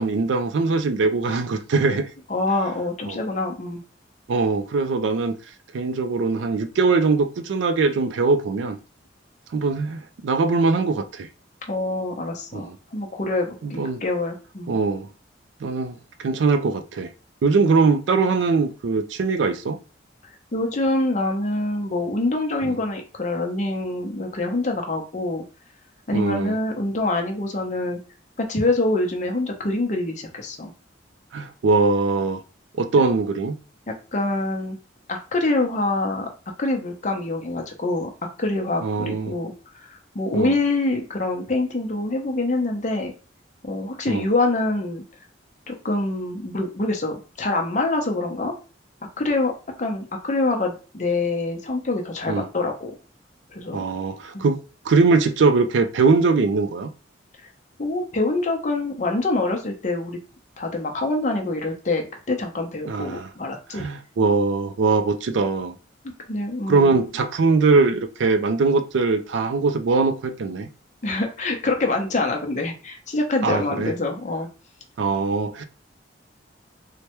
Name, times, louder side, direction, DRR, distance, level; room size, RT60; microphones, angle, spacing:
voice 1, 0.0-2.1 3.1-3.2 4.3-5.3 5.7-8.8 9.5-11.3 12.5-12.8 13.6-14.0 14.7-15.1 15.6-17.1 17.4-19.8 22.6-22.8 26.1-26.6 31.3-32.4 32.8-33.5 38.8-39.3 40.3-40.5 44.1-44.3 52.3-52.5 53.7-54.6 54.9-56.9 62.9-63.3 63.7-65.8 66.7-70.7 73.4-73.9 75.0-75.6, right 4 dB, 70° right, 0.4 m, -21 dB
voice 2, 2.3-3.8 11.7-14.8 20.5-25.4 26.1-28.0 28.4-30.7 33.9-34.8 35.1-36.3 36.6-38.1 38.4-39.5 39.8-43.1 43.6-45.0 45.7-48.5 49.2-49.5 49.8-52.9 53.5-53.9 54.3-54.5 57.8-60.2 60.6-63.9 66.0-67.0 71.0-74.5, left 2 dB, 40° left, 0.6 m, -25 dB
3.2 x 2.1 x 2.9 m
head